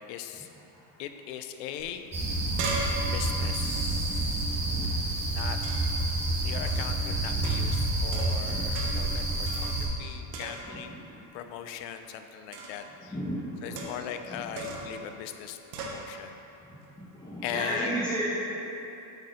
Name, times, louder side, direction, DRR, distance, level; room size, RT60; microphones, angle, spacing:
voice 1, 0.1-0.5 1.0-2.0 3.1-4.6 5.3-5.6 6.4-13.2 13.6-16.3 17.4-18.0, left 9 dB, 80° left, 8 dB, 0.7 m, -39 dB
sound 1, 1.8-1.9 2.2-4.9 5.6-6.0 6.7-6.9 7.4-8.5 8.7-9.1 9.5-10.0 10.3-10.9 12.5-12.9 13.8-14.2 14.6-15.0 15.7-16.0, right 3 dB, 80° right, 1.3 m, -38 dB
sound 2, 2.1-9.9, right 2 dB, 15° right, 0.8 m, -29 dB
voice 2, 13.1-13.8 17.1-18.2, right 1 dB, 10° left, -12 dB, 1.1 m, -33 dB
8.0 x 4.3 x 5.1 m, 3.0 s
cardioid pair, 175°, 49 cm